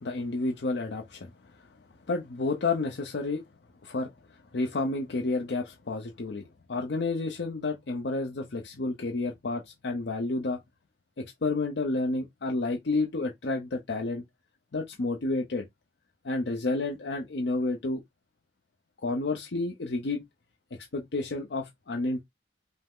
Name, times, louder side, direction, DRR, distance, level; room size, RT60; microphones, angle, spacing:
voice 1, 0.0-1.7 2.1-3.4 3.8-10.6 11.2-14.2 14.7-15.6 16.2-18.0 19.0-20.2 20.7-22.2, left 3 dB, 70° left, 0.6 m, -30 dB
5.4 x 2.0 x 3.6 m
head